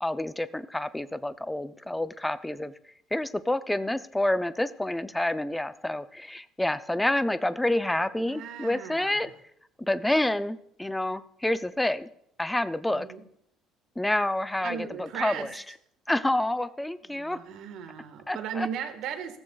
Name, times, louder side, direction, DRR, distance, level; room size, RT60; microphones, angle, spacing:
voice 1, 0.0-2.7 3.1-9.3 9.8-12.1 12.4-13.1 14.0-15.6 16.1-17.4 18.3-18.7, left 1 dB, 5° left, 13 dB, 0.4 m, -28 dB
voice 2, 8.3-9.1 12.9-13.2 14.6-15.5 17.1-19.4, right 8 dB, 60° right, 7 dB, 1.5 m, -36 dB
16.0 x 14.5 x 2.3 m, 0.73 s
cardioid pair, 170°, 0 cm